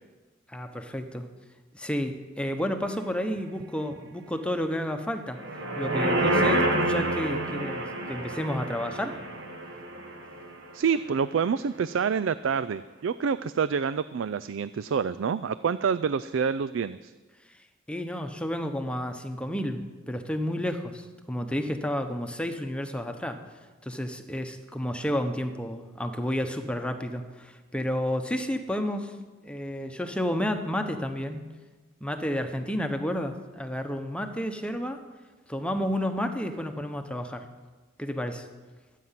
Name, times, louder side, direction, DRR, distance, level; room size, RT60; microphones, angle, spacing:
voice 1, 0.5-1.3 1.7-5.4 5.8-9.2 17.9-23.4 23.8-29.1 29.4-31.5 32.0-35.0 35.5-37.5 38.0-38.5, equal, 5° left, 6 dB, 1.0 m, -31 dB
sound 1, 5.3-10.7 11.1-11.2, right 1 dB, 60° right, 1.7 m, -28 dB
voice 2, 10.7-17.1, right 6 dB, 80° right, 15 dB, 0.4 m, -27 dB
22.5 x 9.2 x 5.8 m, 1.3 s
head